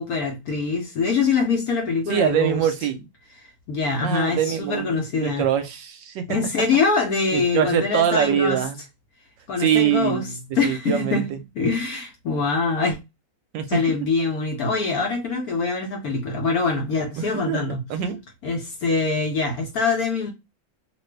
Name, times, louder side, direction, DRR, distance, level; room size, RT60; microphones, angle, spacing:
voice 1, 0.0-2.7 3.4-5.5 6.3-8.6 9.5-10.3 10.5-13.0 13.7-17.8 18.4-20.3, left 4 dB, 65° left, 1.0 m, -24 dB
voice 2, 2.1-3.0 4.0-6.3 7.3-8.8 9.6-10.3 10.6-11.4 13.5-13.8 17.2-17.6 17.9-18.2, right 9 dB, 75° right, 1.2 m, -23 dB
2.9 x 2.5 x 3.2 m
omnidirectional pair, 2.1 m